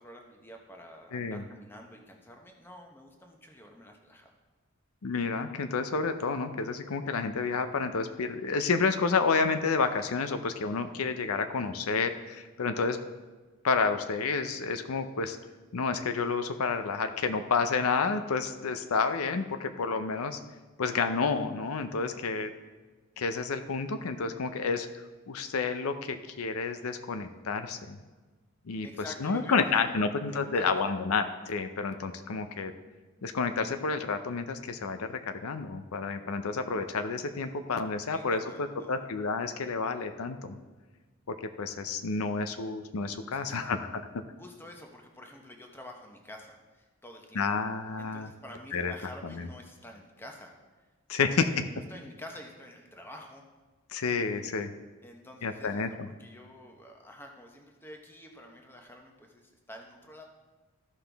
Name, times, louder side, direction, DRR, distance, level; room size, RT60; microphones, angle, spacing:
voice 1, 0.0-4.3 28.8-30.8 38.1-38.9 43.3-43.8 44.4-47.5 48.0-50.5 51.3-51.4 51.7-53.4 55.0-60.2, left 1 dB, 10° left, 2 dB, 0.9 m, -48 dB
voice 2, 1.1-1.4 5.0-13.0 13.6-15.4 15.7-20.4 20.8-22.5 23.2-24.9 25.3-28.0 28.7-28.9 29.2-32.7 33.2-35.1 35.4-40.6 41.3-44.0 47.4-48.3 48.7-48.9 49.2-49.5 51.1-51.5 53.9-54.7 55.4-56.1, left 4 dB, 75° left, 8 dB, 0.6 m, -30 dB
13.5 x 5.7 x 3.4 m, 1.3 s
head